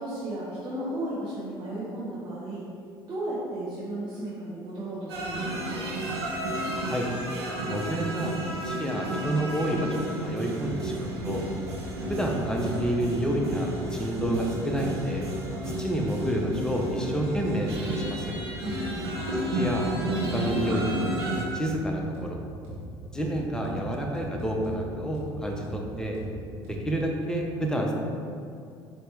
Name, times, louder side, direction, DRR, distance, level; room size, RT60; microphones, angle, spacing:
voice 1, 0.0-2.6 3.1-5.9 18.6-19.3, right 1 dB, 35° right, -10 dB, 1.1 m, -34 dB
sound 1, 5.1-21.4, right 1 dB, 80° right, 0.7 m, -32 dB
voice 2, 7.7-8.3 8.6-11.4 12.1-15.2 15.8-18.2 19.5-19.9 20.3-20.8 21.5-22.4 23.1-26.2 26.7-27.9, right 1 dB, 5° left, -1 dB, 0.7 m, -29 dB
sound 2, 10.6-10.8 11.1-11.3 11.6-12.8 13.1-13.3 13.6-13.8 14.1-14.3 14.6-14.8 15.1-15.3 15.6-15.8 16.1-16.8 17.1-17.3 17.6-17.8 18.1-18.3 18.6-18.8 19.1-19.3 19.6-20.8 21.1-21.3 21.6-21.8 22.1-22.3 22.6-22.8 23.1-23.3 23.6-23.8 24.1-24.8 25.1-25.3 25.6-25.8 26.1-26.3 26.6-26.8, right 2 dB, 60° right, 1.5 m, -40 dB
4.4 x 2.9 x 3.2 m, 2.4 s
hypercardioid pair, 65°, 13 cm